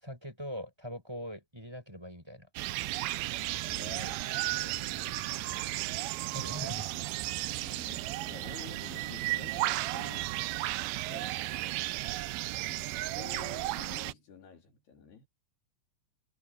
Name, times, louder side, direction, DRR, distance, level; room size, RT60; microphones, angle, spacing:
voice 1, 0.0-2.5 6.2-6.9 7.5-7.6 8.2-8.3, equal, 5° right, 5.8 m, -42 dB
sound 1, 2.6-14.1, right 18 dB, 80° right, 2.4 m, -34 dB
sound 2, 3.4-10.6, left 2 dB, 45° left, 5.3 m, -55 dB
voice 2, 3.6-4.9 7.6-12.1 12.7-15.3, left 6 dB, 80° left, 6.2 m, -51 dB
omnidirectional pair, 4.5 m